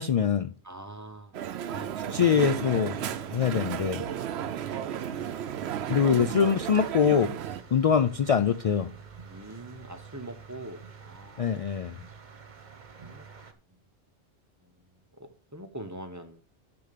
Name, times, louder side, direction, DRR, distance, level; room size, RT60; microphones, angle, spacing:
voice 1, 0.0-0.5 2.1-4.0 5.9-7.4 7.7-8.9 11.4-12.0, left 7 dB, 65° left, 11 dB, 0.3 m, -24 dB
voice 2, 0.6-2.3 7.5-7.6 9.2-11.7 13.0-13.2 14.6-14.7 15.2-16.4, right 1 dB, 15° right, 8 dB, 0.8 m, -44 dB
Crowd, 1.3-7.6, right 9 dB, 70° right, 0.9 m, -34 dB
sound 1, 1.9-13.5, right 5 dB, 45° right, 1.1 m, -48 dB
6.9 x 6.8 x 6.7 m, 0.41 s
omnidirectional pair, 1.2 m